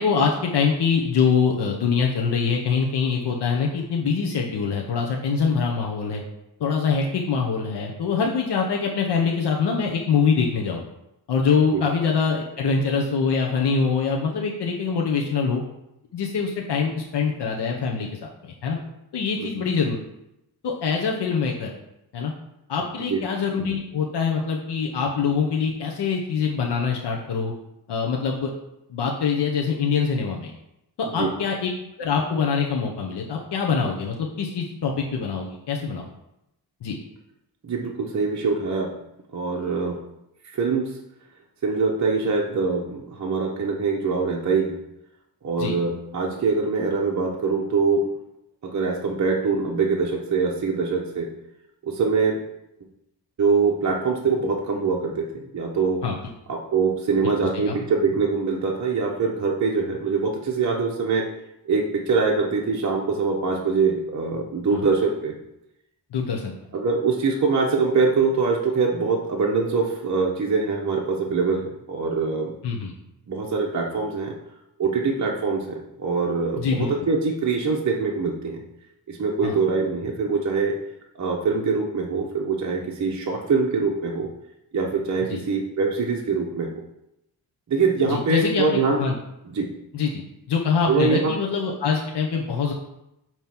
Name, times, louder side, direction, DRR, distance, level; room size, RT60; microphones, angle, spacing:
voice 1, 0.0-6.2 6.6-10.8 11.3-15.6 16.1-18.8 19.1-20.0 20.6-21.7 22.1-22.3 22.7-27.5 27.9-28.5 28.9-30.5 31.0-31.7 32.0-36.1 36.8-37.0 45.6-45.8 56.0-56.3 57.2-57.3 57.7-57.8 64.7-64.9 66.1-66.5 72.6-72.9 76.6-76.9 79.4-79.6 85.3-85.4 88.1-89.2 89.9-92.7, left 5 dB, 80° left, 0 dB, 1.0 m, -24 dB
voice 2, 37.6-38.9 39.3-40.0 40.5-40.9 41.6-44.8 45.4-48.0 48.6-51.3 51.8-52.4 53.4-56.0 56.5-61.2 61.7-65.3 66.7-72.5 73.3-74.3 74.8-78.6 79.1-80.7 81.2-84.3 84.7-86.7 87.7-89.0 89.5-89.7 90.9-91.3, right 4 dB, 45° right, -1 dB, 1.0 m, -23 dB
9.0 x 3.1 x 5.9 m, 0.85 s
wide cardioid pair, 125°, 40 cm